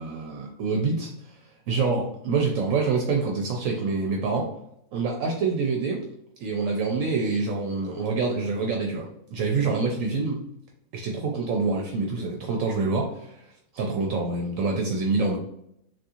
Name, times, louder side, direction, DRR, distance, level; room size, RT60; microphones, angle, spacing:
voice 1, 0.0-1.4 1.7-4.5 4.9-6.0 6.4-10.4 10.9-13.5 13.7-15.4, right 4 dB, 70° right, 1 dB, 0.9 m, -26 dB
3.5 x 2.5 x 2.8 m, 0.75 s
omnidirectional pair, 1.5 m